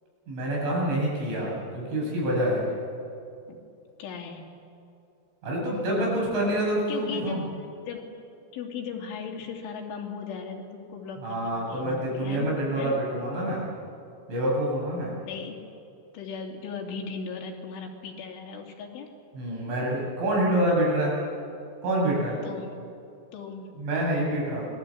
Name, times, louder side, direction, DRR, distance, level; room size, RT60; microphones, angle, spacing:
voice 1, 0.3-2.7 5.4-7.4 11.2-13.6 14.3-15.1 19.3-21.2 21.8-22.4 23.8-24.7, right 1 dB, 80° right, -3 dB, 10.5 m, -27 dB
voice 2, 4.0-4.5 6.9-7.5 7.8-8.2 8.5-13.0 15.2-15.6 16.1-19.1 22.4-22.8 23.3-23.9, left 5 dB, 90° left, 1 dB, 5.3 m, -37 dB
27.5 x 21.5 x 8.7 m, 2.6 s
omnidirectional pair, 5.4 m